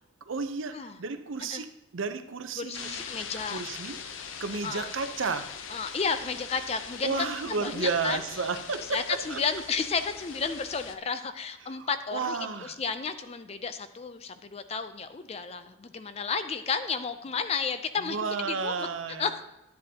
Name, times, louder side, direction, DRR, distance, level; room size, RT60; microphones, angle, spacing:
voice 1, 0.2-3.0 3.5-5.5 7.0-9.4 11.7-12.8 18.0-19.3, right 4 dB, 85° right, 10 dB, 0.6 m, -32 dB
voice 2, 2.6-3.6 4.6-4.9 5.7-7.3 7.6-8.2 8.9-18.9 19.2-19.4, left 5 dB, 30° left, 11 dB, 0.4 m, -32 dB
sound 1, 2.7-11.0, left 6 dB, 85° left, 0.6 m, -41 dB
10.0 x 7.6 x 2.8 m, 0.91 s
head